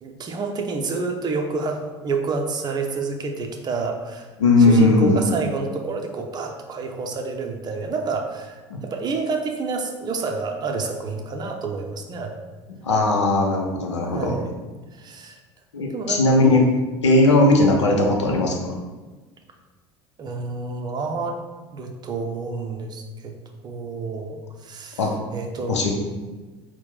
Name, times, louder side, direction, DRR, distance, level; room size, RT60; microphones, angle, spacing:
voice 1, 0.0-4.3 4.6-12.4 14.0-14.5 14.9-15.4 15.8-16.2 17.3-17.4 20.2-21.4 21.7-23.3 23.6-25.0 25.3-25.9, right 4 dB, 30° right, 4 dB, 0.6 m, -29 dB
voice 2, 4.4-5.2 8.7-8.8 12.8-14.4 15.7-16.7 17.0-18.7 25.0-25.1 25.7-25.9, left 2 dB, 75° left, 1 dB, 0.6 m, -18 dB
4.3 x 2.2 x 3.9 m, 1.3 s
figure-of-eight pair, 70°, 15 cm